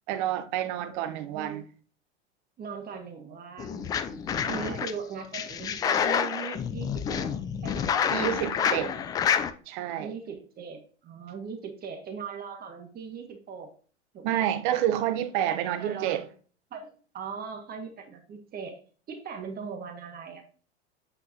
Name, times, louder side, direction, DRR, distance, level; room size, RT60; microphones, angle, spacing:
voice 1, 0.1-1.6 4.4-4.8 8.1-8.9 9.7-10.1 14.2-16.2, right 11 dB, 45° right, 0.9 m, -29 dB
voice 2, 0.9-1.6 2.6-7.9 8.4-9.1 10.0-13.7 14.1-14.5 15.8-16.2 16.7-18.8 19.1-20.4, right 6 dB, 25° right, 1.8 m, -40 dB
sound 1, 3.6-4.9 5.3-9.5, left 8 dB, 10° left, 0.3 m, -28 dB
9.1 x 7.6 x 2.8 m
figure-of-eight pair, 90°, 34 cm